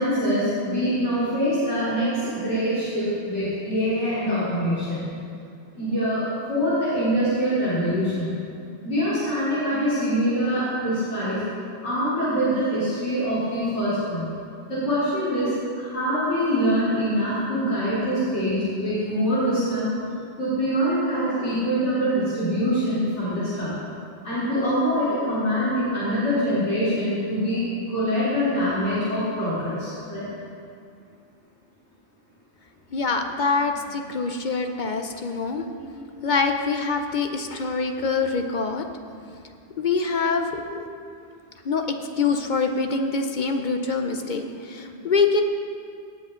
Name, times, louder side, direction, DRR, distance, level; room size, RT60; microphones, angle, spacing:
voice 1, 0.0-5.0 5.7-8.3 8.8-11.4 11.8-14.3 14.7-15.5 15.8-19.9 20.4-23.7 24.2-30.3, equal, 80° left, -13 dB, 4.0 m, -24 dB
voice 2, 32.9-38.9 39.8-40.9 41.6-41.9 42.2-45.4, left 4 dB, 50° left, 5 dB, 0.7 m, -25 dB
18.0 x 8.1 x 3.8 m, 2.4 s
omnidirectional pair, 1.2 m